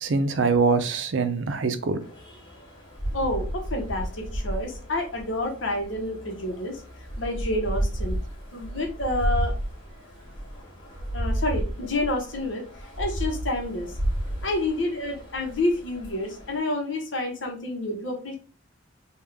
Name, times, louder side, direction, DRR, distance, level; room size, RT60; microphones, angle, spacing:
voice 1, 0.0-2.0, right 4 dB, 70° right, 0.5 m, -23 dB
sound 1, 2.0-16.6, equal, 25° left, 1.5 m, -32 dB
voice 2, 3.1-6.8 7.2-8.2 8.5-9.5 11.1-13.9 14.4-18.4, left 1 dB, 75° left, 1.1 m, -29 dB
3.5 x 2.4 x 3.3 m
head